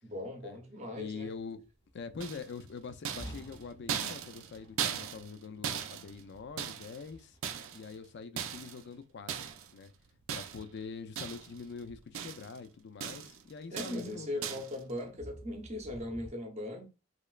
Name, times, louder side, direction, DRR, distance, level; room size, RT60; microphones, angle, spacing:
voice 1, 0.0-1.3 13.7-16.9, left 1 dB, 35° right, 0.7 m, -39 dB
voice 2, 0.9-1.6 1.9-7.4 7.7-9.9 10.3-14.6, left 5 dB, 55° left, 0.4 m, -44 dB
sound 1, 1.0-16.3, equal, 25° left, 0.7 m, -53 dB
sound 2, 2.2-2.7 3.1-5.4 5.6-7.1 7.4-8.0 8.4-8.8 9.3-9.7 10.3-10.8 11.2-11.6 11.9-12.6 13.0-13.4 13.8-14.1 14.4-14.8, right 8 dB, 75° right, 0.4 m, -38 dB
3.2 x 2.9 x 2.3 m
head